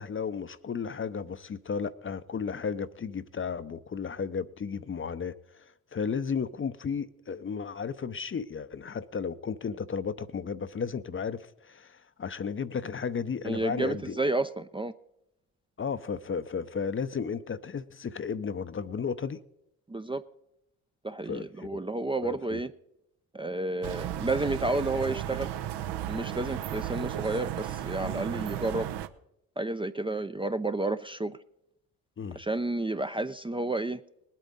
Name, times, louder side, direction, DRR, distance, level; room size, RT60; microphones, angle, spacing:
voice 1, 0.0-5.6 5.9-14.2 15.8-19.4 21.2-21.8 22.2-22.6 32.2-32.4, left 6 dB, 30° left, 0.7 m, -34 dB
voice 2, 13.4-14.9 19.9-20.2 21.0-22.7 23.3-25.5 26.1-28.9 29.6-31.4 32.4-34.0, right 2 dB, 10° right, 0.6 m, -31 dB
sound 1, 23.8-29.1, right 11 dB, 65° right, 0.9 m, -34 dB
20.5 x 8.4 x 4.0 m
hypercardioid pair, 55°, 43 cm